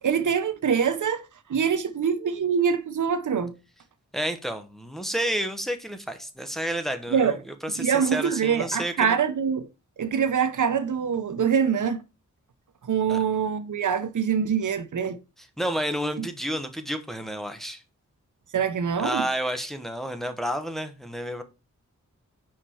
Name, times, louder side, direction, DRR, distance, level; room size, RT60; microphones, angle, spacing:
voice 1, 0.0-3.5 7.1-7.4 7.8-9.7 10.0-12.0 12.8-15.2 18.5-19.2, right 7 dB, 75° right, 0.7 m, -24 dB
voice 2, 4.1-9.2 13.1-13.2 15.6-17.8 19.0-21.4, equal, ahead, 1.0 m, -30 dB
5.4 x 5.0 x 4.3 m
wide cardioid pair, 95°, 31 cm